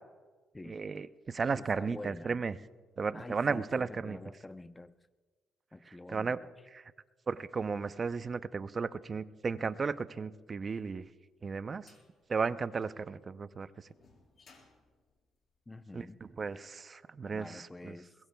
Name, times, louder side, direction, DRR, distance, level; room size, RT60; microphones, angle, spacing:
voice 1, 0.7-2.5 3.0-4.2 6.1-6.4 6.7-6.8 7.3-11.0 11.4-11.9 12.3-13.7 15.9-16.0 16.4-17.9, right 5 dB, 35° right, 0.6 m, -34 dB
voice 2, 1.6-2.4 3.1-4.9 5.7-6.5 15.7-16.2 17.3-18.1, left 2 dB, 15° left, 0.6 m, -47 dB
sound 1, 11.3-16.1, left 4 dB, 50° left, 4.3 m, -65 dB
22.5 x 21.0 x 2.3 m
cardioid pair, 90°, 0 cm